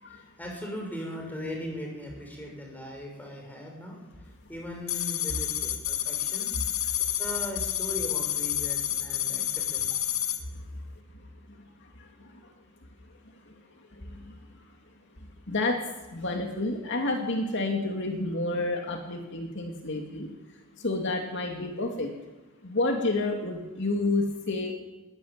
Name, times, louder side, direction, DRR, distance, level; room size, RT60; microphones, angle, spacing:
voice 1, 0.1-6.6 7.2-10.0, equal, 10° left, 0 dB, 6.5 m, -39 dB
sound 1, 4.9-10.4, left 11 dB, 85° left, 2.0 m, -29 dB
voice 2, 11.8-12.4 13.4-13.5 13.9-14.6 15.5-20.3 20.8-22.1 22.6-24.7, left 2 dB, 55° left, 2 dB, 2.6 m, -30 dB
20.5 x 16.5 x 9.1 m, 1.1 s
head